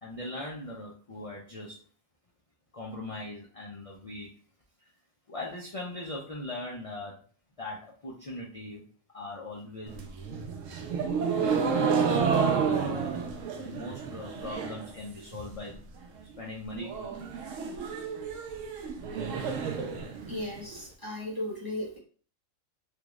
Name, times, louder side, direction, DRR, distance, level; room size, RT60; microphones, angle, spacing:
voice 1, 0.0-1.8 2.7-4.3 5.3-7.2 7.6-8.8 9.1-10.0 11.8-13.2 13.6-15.8 16.4-17.3, left 2 dB, 60° left, -4 dB, 0.3 m, -40 dB
sound 1, 9.9-14.9 15.2-15.7 16.0-16.1 16.4-16.5 16.8-20.8, right 6 dB, 70° right, 0.9 m, -30 dB
voice 2, 20.3-22.0, left 1 dB, 20° right, -5 dB, 0.7 m, -36 dB
3.4 x 2.3 x 3.0 m, 0.42 s
omnidirectional pair, 1.4 m